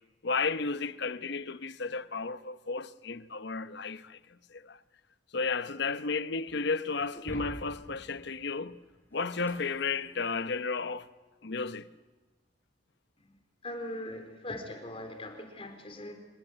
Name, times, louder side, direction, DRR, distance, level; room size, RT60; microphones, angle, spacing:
voice 1, 0.2-4.2 4.5-4.8 5.3-8.8 9.1-11.1 11.4-11.9, left 4 dB, 60° left, 0.9 m, -33 dB
Shatter, 7.1-10.6, equal, 10° left, 5.7 m, -47 dB
voice 2, 13.6-16.1, left 1 dB, 30° left, 4.1 m, -40 dB
26.5 x 20.0 x 9.9 m
head